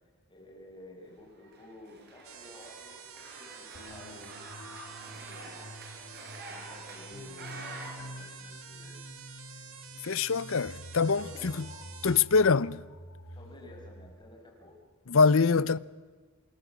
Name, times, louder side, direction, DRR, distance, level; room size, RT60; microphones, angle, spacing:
voice 1, 0.3-4.4 5.1-5.6 6.5-9.0 11.0-11.6 13.3-14.8, left 1 dB, 20° left, 5.7 m, -52 dB
sound 1, 1.4-7.9, right 3 dB, 50° right, 5.2 m, -47 dB
sound 2, 2.2-12.2, right 8 dB, 70° right, 2.3 m, -49 dB
sound 3, 3.7-14.1, left 1 dB, 80° left, 3.6 m, -48 dB
voice 2, 10.0-11.5 12.0-12.8 15.1-15.8, left 4 dB, 65° left, 0.7 m, -24 dB
28.0 x 21.5 x 8.2 m
head